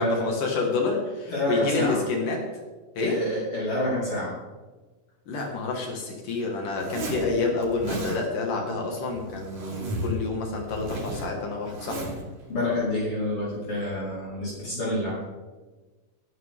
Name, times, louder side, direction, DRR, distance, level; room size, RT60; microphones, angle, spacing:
voice 1, 0.0-2.4 3.0-3.2 5.3-12.1, left 3 dB, 75° left, 0 dB, 3.6 m, -28 dB
voice 2, 1.3-2.0 3.0-4.4 12.5-15.2, left 1 dB, 40° left, -8 dB, 5.5 m, -27 dB
Zipper (clothing), 6.7-7.3 7.6-8.2 9.0-10.2 10.5-12.2, right 1 dB, 65° right, 4.9 m, -34 dB
20.0 x 13.0 x 3.8 m, 1.3 s
omnidirectional pair, 3.7 m